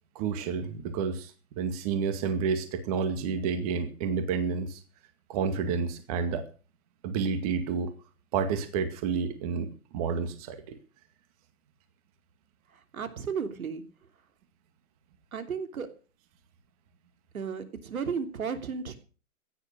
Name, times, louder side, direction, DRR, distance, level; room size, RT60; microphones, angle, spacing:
voice 1, 0.2-4.8 5.3-6.4 7.0-7.9 8.3-10.8, right 6 dB, 25° right, 9 dB, 2.0 m, -30 dB
voice 2, 12.9-13.8 15.3-15.9 17.3-19.0, right 6 dB, 75° right, 8 dB, 3.1 m, -34 dB
16.0 x 10.0 x 6.6 m, 0.38 s
hypercardioid pair, 160°, 42 cm